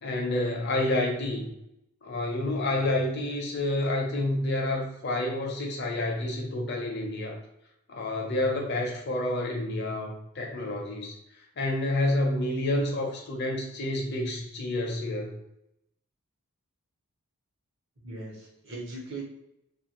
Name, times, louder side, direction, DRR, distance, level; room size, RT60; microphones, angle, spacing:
voice 1, 0.0-1.5 2.0-7.4 7.9-11.2 11.6-15.4, left 1 dB, 50° left, 1 dB, 0.7 m, -29 dB
voice 2, 18.0-19.2, right 2 dB, 55° right, -2 dB, 1.0 m, -39 dB
2.8 x 2.4 x 2.9 m, 0.83 s
head